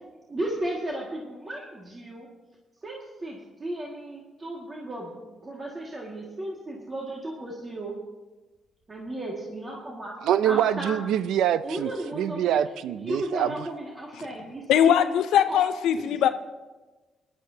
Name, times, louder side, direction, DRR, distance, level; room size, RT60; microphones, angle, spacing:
voice 1, 0.3-2.3 2.8-7.9 8.9-11.0 11.6-12.6 13.0-15.0 15.5-15.6 16.0-16.1, right 1 dB, 30° right, 2.0 m, -35 dB
voice 2, 10.2-13.5, right 10 dB, 90° right, 0.4 m, -25 dB
voice 3, 14.7-16.3, left 9 dB, 90° left, 0.5 m, -20 dB
21.0 x 11.5 x 2.8 m
cardioid pair, 90°, 0 cm